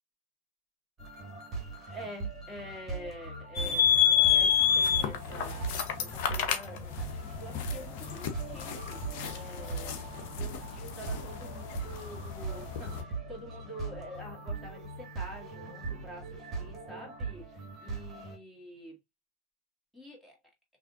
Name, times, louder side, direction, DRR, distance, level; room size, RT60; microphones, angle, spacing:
sound 1, 1.0-18.4, right 4 dB, 20° right, 1.8 m, -40 dB
voice 1, 1.9-19.0 19.9-20.4, equal, ahead, 2.1 m, -47 dB
sound 2, 3.6-13.0, left 9 dB, 45° left, 0.8 m, -29 dB
5.8 x 2.6 x 2.5 m
figure-of-eight pair, 90°, 0 cm